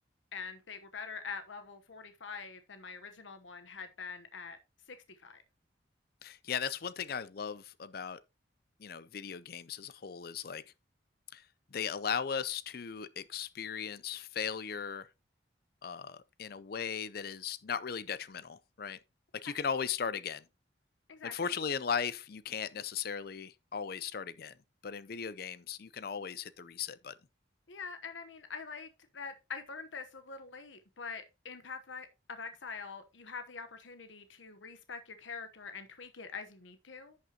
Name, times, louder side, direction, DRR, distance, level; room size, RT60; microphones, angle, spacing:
voice 1, 0.3-4.6 4.9-5.0 5.2-5.4 19.4-19.5 21.1-21.5 27.7-37.2, left 5 dB, 85° left, 1.0 m, -44 dB
voice 2, 6.2-8.2 8.8-10.6 11.3-11.4 11.7-15.1 15.8-19.0 19.3-20.4 21.2-24.5 24.8-27.2, left 7 dB, 50° left, 0.5 m, -37 dB
11.0 x 6.5 x 2.9 m
head